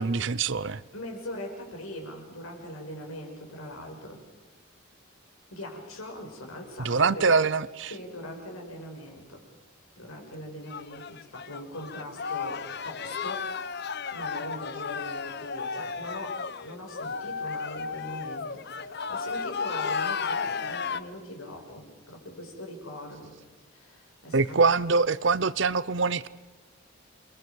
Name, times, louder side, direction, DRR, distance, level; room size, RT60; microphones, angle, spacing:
voice 1, 0.0-0.8 6.8-7.9 24.3-26.3, right 4 dB, 60° right, 0.7 m, -24 dB
voice 2, 0.9-4.2 5.5-7.3 7.9-9.4 10.0-23.3 23.7-24.9, left 1 dB, 90° left, 6.7 m, -41 dB
sound 1, 10.6-21.0, left 5 dB, 50° left, 0.8 m, -34 dB
29.5 x 23.0 x 5.4 m
head